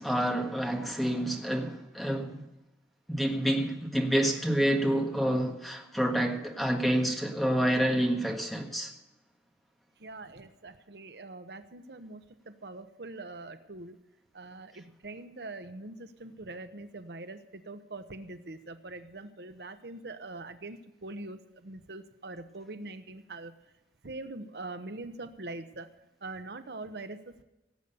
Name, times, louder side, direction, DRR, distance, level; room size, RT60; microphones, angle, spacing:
voice 1, 0.0-2.4 3.1-8.9, equal, ahead, 1.6 m, -28 dB
voice 2, 10.0-14.0 14.3-23.5 24.0-25.9 26.2-27.4, right 2 dB, 65° right, 0.9 m, -43 dB
17.5 x 8.1 x 6.9 m
head